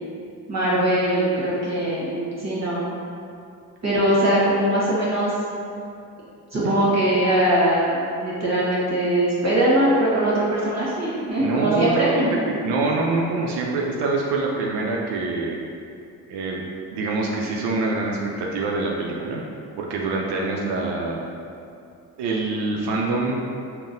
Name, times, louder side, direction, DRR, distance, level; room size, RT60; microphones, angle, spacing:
voice 1, 0.5-2.8 3.8-5.3 6.5-12.4, right 1 dB, 35° right, -7 dB, 1.2 m, -21 dB
voice 2, 11.4-15.6 16.3-16.6 16.9-19.4 19.8-21.2 22.2-23.4, right 3 dB, 70° right, -2 dB, 0.5 m, -25 dB
3.8 x 2.1 x 2.5 m, 2.5 s
hypercardioid pair, 50°, 43 cm